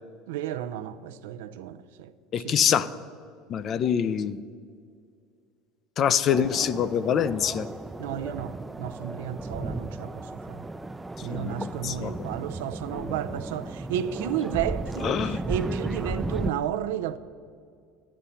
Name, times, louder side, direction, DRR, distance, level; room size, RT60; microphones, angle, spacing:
voice 1, 0.3-2.7 8.0-10.7 11.2-17.2, right 10 dB, 80° right, 0.5 m, -33 dB
voice 2, 2.3-2.9 3.5-4.4 6.0-7.7 11.3-12.1 15.0-15.4, left 8 dB, 45° left, 0.5 m, -25 dB
sound 1, 6.3-16.5, right 2 dB, 15° right, 0.4 m, -34 dB
13.0 x 10.0 x 5.6 m
hypercardioid pair, 85°, 0 cm